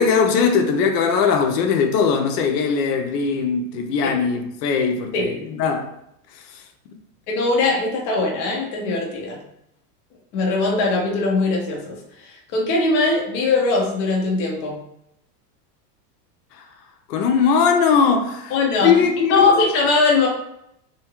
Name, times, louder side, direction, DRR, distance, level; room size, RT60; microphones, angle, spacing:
voice 1, 0.0-5.9 6.3-6.6 16.6-16.7 17.1-19.6, left 6 dB, 75° left, 0.7 m, -20 dB
voice 2, 7.3-9.4 10.3-12.0 12.2-14.8 18.5-18.9 19.3-20.3, left 3 dB, 30° left, 0.4 m, -20 dB
2.8 x 2.3 x 2.9 m
supercardioid pair, 150°, 48 cm